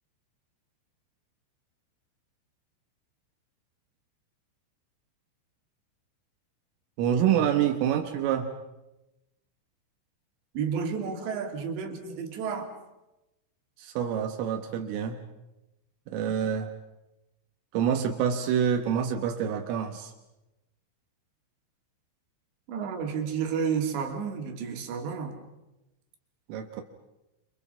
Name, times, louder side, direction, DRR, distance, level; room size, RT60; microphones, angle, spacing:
voice 1, 7.0-8.6 13.8-15.2 16.1-16.7 17.7-20.1 26.5-26.8, right 8 dB, 85° right, 5 dB, 4.0 m, -27 dB
voice 2, 10.5-12.7 22.7-25.4, right 6 dB, 65° right, 4 dB, 4.5 m, -31 dB
28.0 x 27.5 x 5.6 m, 0.95 s
omnidirectional pair, 5.7 m